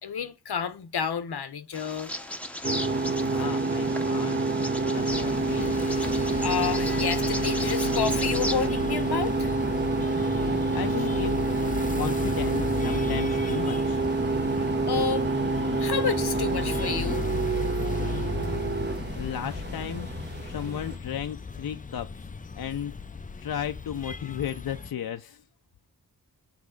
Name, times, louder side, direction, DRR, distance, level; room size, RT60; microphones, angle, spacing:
voice 1, 0.0-2.3 3.0-3.2 6.4-9.5 14.9-15.3 15.6-17.3, left 7 dB, 85° left, 0.9 m, -30 dB
Bird vocalization bird call bird song, 1.7-8.7, left 1 dB, 5° left, 0.8 m, -37 dB
sound 1, 2.6-21.0, right 3 dB, 30° right, 0.8 m, -27 dB
voice 2, 3.1-5.8 10.2-11.6 11.9-14.0 17.8-18.7 19.1-20.1 20.4-22.3 22.5-23.0 23.4-25.4, left 9 dB, 70° left, 0.5 m, -35 dB
sound 2, 5.0-24.9, left 5 dB, 20° left, 0.4 m, -35 dB
7.4 x 3.5 x 6.4 m
wide cardioid pair, 110°, 38 cm